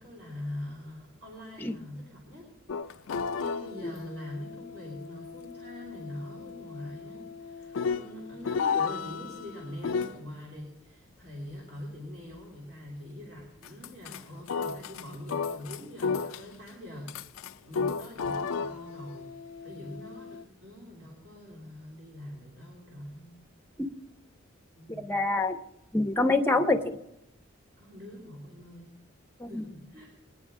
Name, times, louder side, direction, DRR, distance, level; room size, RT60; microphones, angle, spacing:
voice 1, 0.0-2.5 2.9-17.1 17.7-19.3 19.6-23.4 24.8-25.1 27.8-28.9 29.5-30.1, left 1 dB, 50° right, -3 dB, 2.9 m, -43 dB
sound 1, 2.7-10.2 13.6-14.2 14.5-16.7 17.1-20.4, left 5 dB, 85° left, 0.4 m, -34 dB
voice 2, 25.0-25.6 25.9-27.0 29.4-29.6, left 2 dB, 10° left, 5 dB, 0.6 m, -26 dB
20.5 x 9.9 x 3.6 m, 0.86 s
head